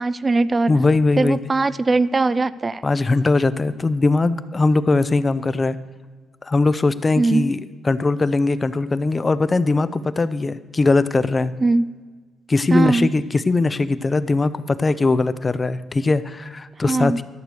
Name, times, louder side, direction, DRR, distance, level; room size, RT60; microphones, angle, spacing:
voice 1, 0.0-0.7 1.2-2.8 7.2-7.5 11.6-12.0 12.7-13.1 16.8-17.2, right 3 dB, 25° right, 16 dB, 0.3 m, -20 dB
voice 2, 0.7-1.4 2.8-5.8 6.4-7.6 7.8-11.5 12.5-17.2, left 3 dB, 25° left, 14 dB, 0.6 m, -20 dB
12.5 x 6.7 x 6.5 m, 1.4 s
cardioid pair, 90°, 0 cm